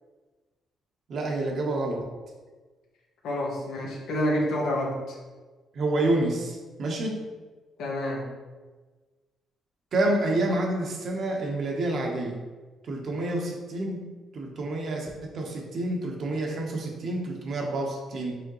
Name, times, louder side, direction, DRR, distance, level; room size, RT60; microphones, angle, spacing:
voice 1, 1.1-2.1 5.7-7.2 9.9-12.4 12.9-14.1 14.3-18.4, right 2 dB, 55° right, 1 dB, 0.9 m, -28 dB
voice 2, 3.2-5.2 7.8-8.3, equal, 80° left, -2 dB, 1.0 m, -28 dB
4.9 x 3.5 x 3.0 m, 1.3 s
cardioid pair, 90°, 0 cm